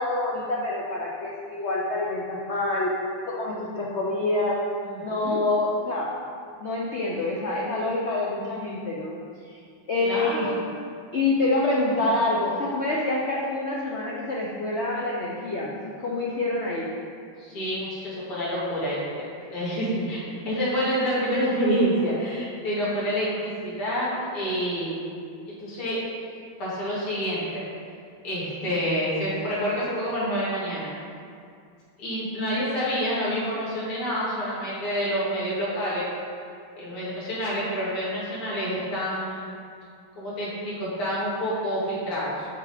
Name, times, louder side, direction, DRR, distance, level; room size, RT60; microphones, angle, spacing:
voice 1, 0.0-2.9 3.3-4.6 5.0-6.1 6.6-9.2 9.4-9.6 9.9-10.5 11.1-16.9 20.3-20.6, left 2 dB, 65° left, -4 dB, 0.6 m, -27 dB
voice 2, 4.8-5.4 10.0-10.6 17.4-25.0 25.6-26.0 26.6-27.6 28.2-30.9 32.0-36.1 36.7-39.5 40.2-42.5, equal, 90° left, -9 dB, 3.2 m, -28 dB
6.8 x 6.6 x 5.0 m, 2.3 s
omnidirectional pair, 2.4 m